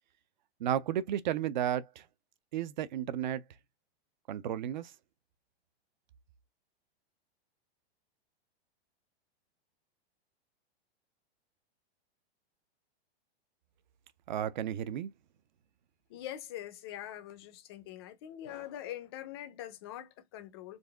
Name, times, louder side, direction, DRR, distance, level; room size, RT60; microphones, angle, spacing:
voice 1, 0.6-2.1 2.5-3.4 4.3-4.9 14.3-15.1, right 10 dB, 45° right, 0.5 m, -33 dB
voice 2, 16.1-20.8, left 12 dB, 25° left, 0.5 m, -43 dB
4.0 x 3.6 x 3.4 m
supercardioid pair, 175°, 32 cm